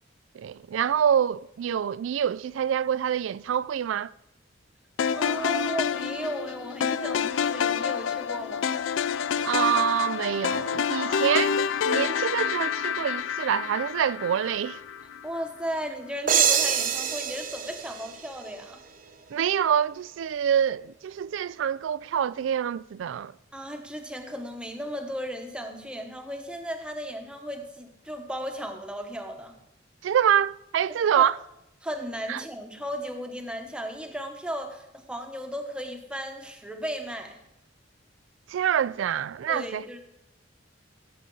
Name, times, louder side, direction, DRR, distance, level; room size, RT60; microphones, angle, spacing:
voice 1, 0.3-4.1 9.4-14.8 19.3-23.3 30.0-31.4 32.3-32.4 38.5-39.8, right 9 dB, 85° right, 0.3 m, -26 dB
sound 1, 5.0-15.2, left 7 dB, 85° left, 0.4 m, -28 dB
voice 2, 5.1-8.8 11.1-11.4 15.2-18.8 23.5-29.6 31.2-31.3 31.8-37.4 39.5-40.0, equal, 5° right, 1.0 m, -35 dB
sound 2, 16.3-18.9, right 8 dB, 45° right, 0.9 m, -26 dB
15.0 x 7.8 x 3.9 m
head